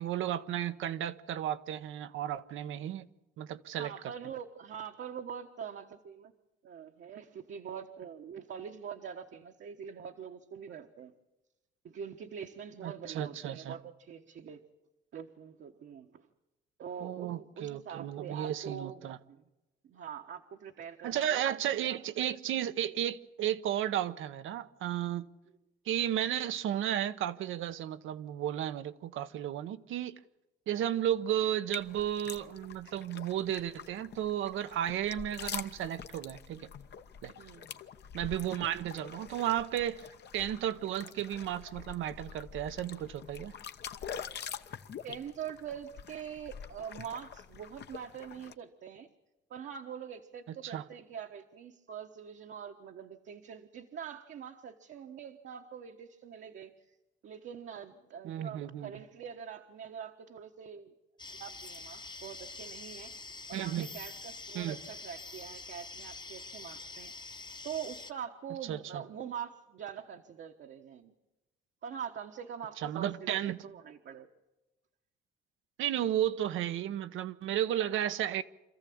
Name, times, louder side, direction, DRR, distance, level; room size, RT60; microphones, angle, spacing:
voice 1, 0.0-3.1 3.4-3.9 12.8-13.8 17.0-19.2 21.0-25.3 25.9-30.1 30.7-36.7 37.2-37.3 38.1-40.1 40.3-43.5 50.6-50.8 58.2-58.9 63.5-63.9 64.5-64.8 68.7-69.0 72.8-73.6 75.8-78.4, right 11 dB, 80° right, 0.9 m, -33 dB
voice 2, 3.8-6.3 6.6-11.1 11.8-14.6 15.1-16.3 16.8-19.0 19.3-19.4 19.8-22.0 37.4-37.7 45.0-49.1 49.5-56.7 57.2-60.9 61.3-63.2 63.5-67.1 67.6-71.1 71.8-74.3, right 8 dB, 65° right, 1.3 m, -44 dB
sound 1, 31.7-48.5, left 7 dB, 60° left, 1.0 m, -46 dB
sound 2, 61.2-68.1, left 3 dB, 20° left, 1.0 m, -46 dB
26.5 x 14.0 x 8.6 m
cardioid pair, 90°, 20 cm